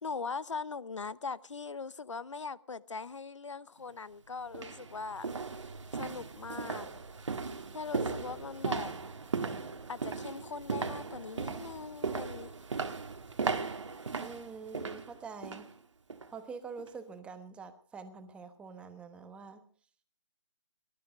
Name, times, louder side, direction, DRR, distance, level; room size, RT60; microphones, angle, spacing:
voice 1, 0.0-5.3 5.9-6.9 7.7-8.9 9.9-12.5, left 4 dB, 85° left, 0.8 m, -40 dB
sound 1, 3.8-3.9 4.5-15.7 16.1-16.3 16.8-16.9, right 4 dB, 80° right, 1.8 m, -37 dB
voice 2, 14.2-15.7 16.3-19.6, right 5 dB, 5° right, 1.2 m, -45 dB
19.5 x 12.5 x 5.3 m
hypercardioid pair, 150°, 15 cm